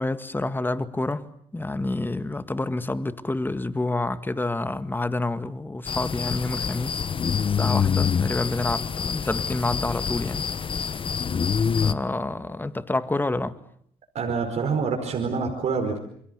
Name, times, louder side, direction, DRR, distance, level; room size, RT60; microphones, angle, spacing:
voice 1, 0.0-7.0 7.5-10.4 11.8-13.6, left 2 dB, 15° left, 1.9 m, -28 dB
sound 1, 5.8-11.9, left 6 dB, 45° left, 1.1 m, -26 dB
voice 2, 14.1-16.0, right 5 dB, 65° right, 4.9 m, -26 dB
28.0 x 22.5 x 8.1 m
supercardioid pair, 65°, 13 cm